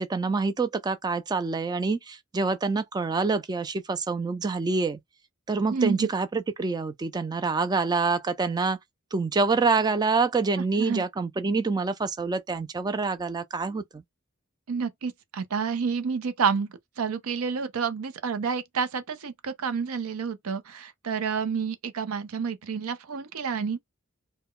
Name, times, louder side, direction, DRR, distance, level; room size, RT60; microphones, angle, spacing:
voice 1, 0.0-5.0 5.5-8.8 9.1-14.0, right 4 dB, 20° right, 0.3 m, -26 dB
voice 2, 5.7-6.1 10.6-11.0 14.7-23.8, right 6 dB, 85° right, 0.5 m, -29 dB
2.2 x 2.1 x 3.6 m
head